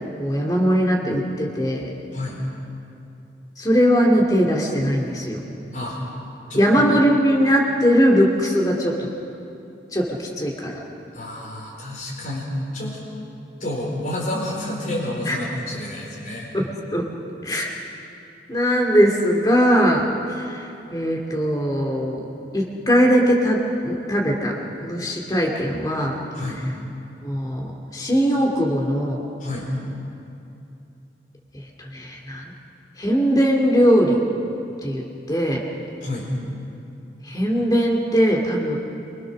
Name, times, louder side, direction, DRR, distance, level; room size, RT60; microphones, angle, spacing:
voice 1, 0.2-1.9 3.6-5.4 6.6-9.1 9.9-10.8 15.3-15.4 16.5-17.0 17.4-17.7 18.5-20.6 20.9-22.2 22.5-26.2 27.2-29.2 31.5-32.5 33.0-34.2 34.8-35.6 37.2-38.8, equal, 20° left, -1 dB, 2.3 m, -20 dB
voice 2, 11.1-12.5 12.7-13.0 13.6-16.5 26.4-26.6 29.4-29.7 36.0-36.3, left 1 dB, 50° left, -5 dB, 4.3 m, -29 dB
26.0 x 24.5 x 6.4 m, 2.7 s
head